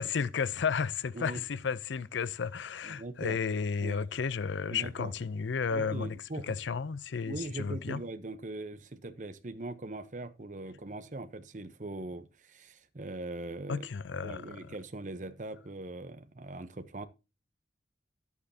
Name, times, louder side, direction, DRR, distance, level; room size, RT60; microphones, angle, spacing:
voice 1, 0.0-6.2 6.5-8.0 13.7-14.7, left 5 dB, 85° left, 0.5 m, -33 dB
voice 2, 2.8-3.4 3.8-4.1 4.7-5.1 5.7-6.6 7.3-13.9 14.2-17.1, right 2 dB, 45° right, 0.8 m, -41 dB
11.0 x 8.3 x 2.7 m
head